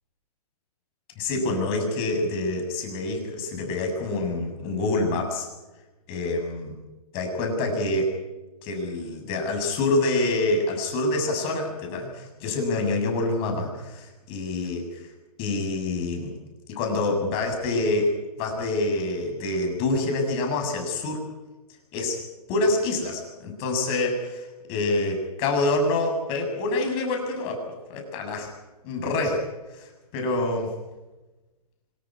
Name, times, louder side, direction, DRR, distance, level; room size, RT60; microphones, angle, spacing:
voice 1, 1.2-5.5 6.1-6.7 7.1-8.1 8.6-15.1 15.4-16.3 16.8-21.2 21.9-22.2 22.5-27.6 27.9-28.5 28.8-29.5 29.7-30.7, left 2 dB, 30° left, 3 dB, 7.4 m, -26 dB
26.0 x 15.0 x 9.9 m, 1.1 s
hypercardioid pair, 145°, 20 cm